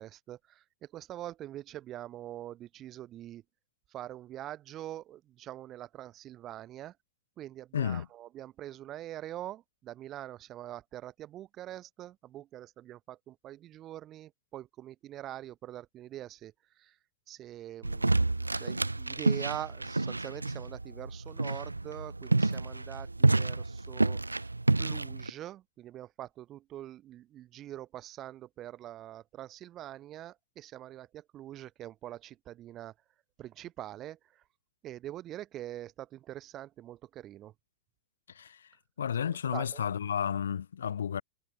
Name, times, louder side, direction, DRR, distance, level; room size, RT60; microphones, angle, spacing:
voice 1, 0.0-3.4 3.9-6.9 7.4-16.5 16.8-16.9 17.3-24.5 24.8-32.9 33.4-34.4 34.8-37.5 39.5-39.8, right 13 dB, 30° right, 1.1 m, -44 dB
voice 2, 7.7-8.1 38.3-38.7 39.0-41.2, left 8 dB, 65° left, 0.5 m, -32 dB
sound 1, 17.8-25.3, right 2 dB, 85° right, 0.6 m, -29 dB
figure-of-eight pair, 90°, 0 cm